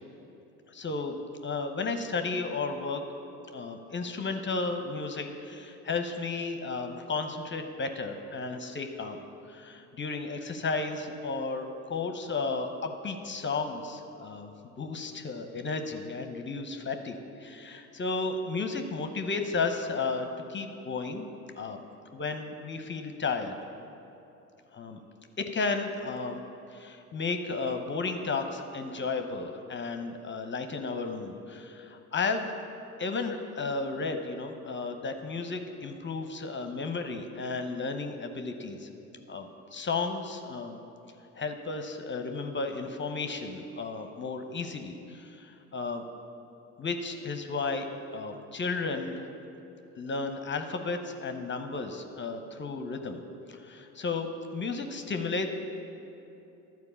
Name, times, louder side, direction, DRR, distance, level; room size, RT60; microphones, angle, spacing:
voice 1, 0.8-1.1 1.4-3.0 3.5-9.2 9.5-14.5 14.8-21.3 21.6-21.8 22.1-23.6 24.7-25.0 25.4-26.4 26.7-32.5 33.0-38.9 39.3-40.8 41.4-46.0 46.8-47.9 48.1-49.3 50.0-53.2 53.5-54.3 54.5-55.5, left 4 dB, 25° left, 7 dB, 0.8 m, -33 dB
12.0 x 4.6 x 6.9 m, 2.9 s
hypercardioid pair, 55°, 42 cm